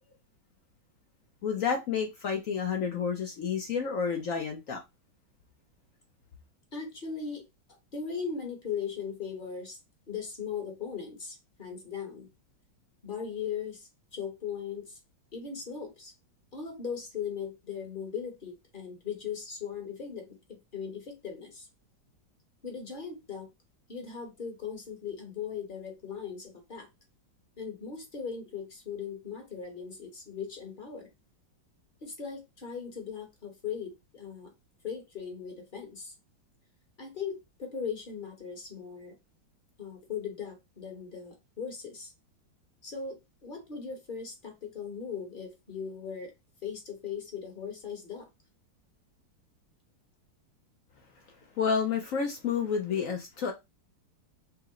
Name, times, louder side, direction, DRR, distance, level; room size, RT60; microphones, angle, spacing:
voice 1, 1.4-4.8 51.6-53.5, left 6 dB, 65° left, 0.8 m, -30 dB
voice 2, 6.7-7.5 7.9-9.8 10.1-12.3 13.0-15.0 15.3-16.1 16.5-21.7 22.6-23.5 23.9-26.9 27.6-31.1 32.0-34.5 34.8-36.1 37.0-39.1 39.8-42.1 42.8-46.3 46.6-48.3 52.9-53.0, left 6 dB, 35° left, 1.0 m, -38 dB
5.8 x 2.1 x 3.7 m
omnidirectional pair, 2.1 m